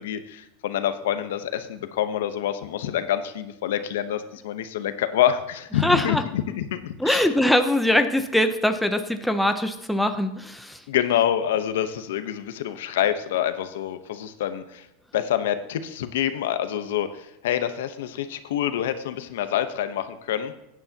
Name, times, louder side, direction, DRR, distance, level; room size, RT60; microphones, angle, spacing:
voice 1, 0.0-7.2 10.9-14.9 15.1-20.5, left 10 dB, 85° left, 10 dB, 0.8 m, -26 dB
voice 2, 5.8-6.2 7.0-10.8, left 1 dB, ahead, 6 dB, 0.6 m, -22 dB
14.5 x 9.5 x 2.8 m, 0.86 s
supercardioid pair, 150°, 0 cm